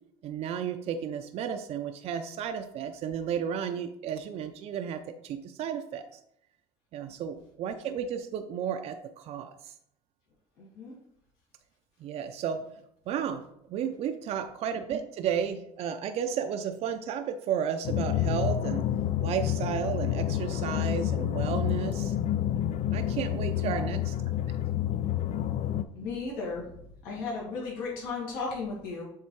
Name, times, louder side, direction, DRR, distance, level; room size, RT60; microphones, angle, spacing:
voice 1, 0.2-6.2 6.9-9.7 12.0-12.7 13.1-13.4 13.7-18.8 19.2-22.1 22.9-24.1, right 8 dB, 50° right, 6 dB, 0.6 m, -33 dB
voice 2, 10.6-11.0 23.5-23.9 25.9-26.7 27.0-29.0, left 4 dB, 75° left, -5 dB, 2.5 m, -35 dB
sound 1, 17.8-25.8, left 11 dB, 55° left, 0.5 m, -29 dB
7.3 x 3.3 x 4.7 m, 0.74 s
supercardioid pair, 95°, 13 cm